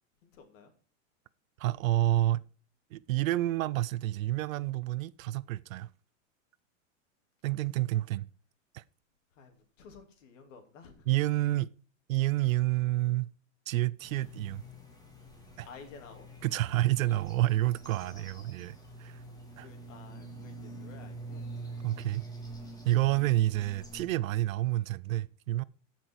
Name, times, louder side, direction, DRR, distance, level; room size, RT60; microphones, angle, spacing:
voice 1, 0.2-0.7 9.4-11.1 15.6-16.3 18.0-18.4 19.6-21.4, left 5 dB, 70° left, 2.9 m, -53 dB
voice 2, 1.6-2.4 2.9-5.9 7.4-8.3 8.7-8.8 11.1-11.7 12.1-13.3 13.7-14.6 15.6-15.7 16.4-19.2 19.6-19.7 21.8-22.3 22.8-25.6, right 16 dB, 80° right, 0.6 m, -29 dB
sound 1, 14.0-24.1, right 2 dB, 10° left, 2.1 m, -46 dB
15.0 x 6.1 x 4.6 m
supercardioid pair, 155°, 40 cm